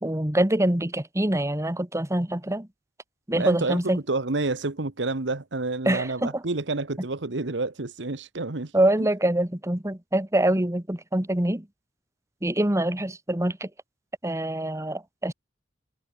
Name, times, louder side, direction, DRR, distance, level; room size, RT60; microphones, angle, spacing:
voice 1, 0.0-2.7 3.3-4.0 5.8-6.4 8.7-11.7 12.4-13.7 14.2-15.3, right 1 dB, 15° right, 1.6 m, -25 dB
voice 2, 3.3-8.7 9.0-9.1, right 3 dB, 75° right, 1.3 m, -29 dB
head